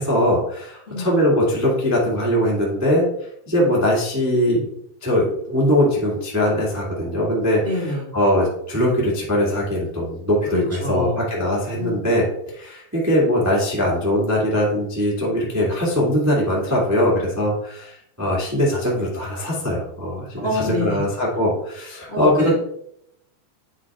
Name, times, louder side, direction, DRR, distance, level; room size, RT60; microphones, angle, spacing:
voice 1, 0.0-3.1 3.5-4.6 5.0-7.6 8.1-22.5, equal, 25° right, -5 dB, 0.4 m, -21 dB
voice 2, 7.6-8.1 10.5-11.2 11.8-12.0 20.3-21.0 22.1-22.5, left 2 dB, 55° left, -6 dB, 0.7 m, -26 dB
9.2 x 5.9 x 3.6 m, 0.74 s
omnidirectional pair, 4.8 m